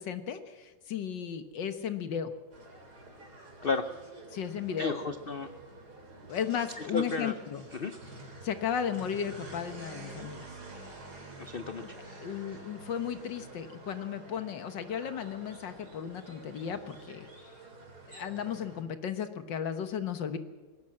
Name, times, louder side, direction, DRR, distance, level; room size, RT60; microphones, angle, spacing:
voice 1, 0.0-2.3 4.3-5.0 6.3-7.6 8.4-10.5 12.2-17.3 18.1-20.4, left 8 dB, 75° left, 9 dB, 1.9 m, -35 dB
sound 1, 2.5-18.8, right 2 dB, 55° right, 4.1 m, -48 dB
voice 2, 3.6-3.9 4.8-5.6 6.8-7.3 7.8-7.9 11.4-12.6, left 3 dB, 50° left, 8 dB, 0.6 m, -34 dB
19.5 x 17.5 x 7.7 m, 1.3 s
omnidirectional pair, 2.0 m